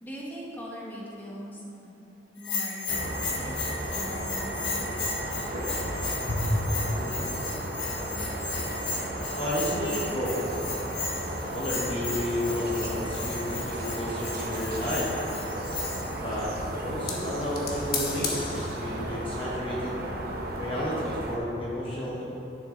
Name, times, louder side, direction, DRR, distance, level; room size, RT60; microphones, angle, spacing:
voice 1, 0.0-1.9 2.4-3.5 3.9-5.1, equal, 10° left, -5 dB, 1.2 m, -41 dB
Bell, 2.4-16.2, left 4 dB, 70° left, 1.4 m, -35 dB
sound 1, 2.9-21.4, right 1 dB, 55° right, 0.9 m, -34 dB
voice 2, 6.3-7.2 9.3-10.6 11.5-15.1 16.2-16.5 16.8-20.0 20.5-22.2, left 1 dB, 30° left, -5 dB, 1.0 m, -31 dB
sound 2, 10.1-19.4, left 5 dB, 55° left, 1.1 m, -41 dB
9.9 x 6.5 x 3.8 m, 2.9 s
head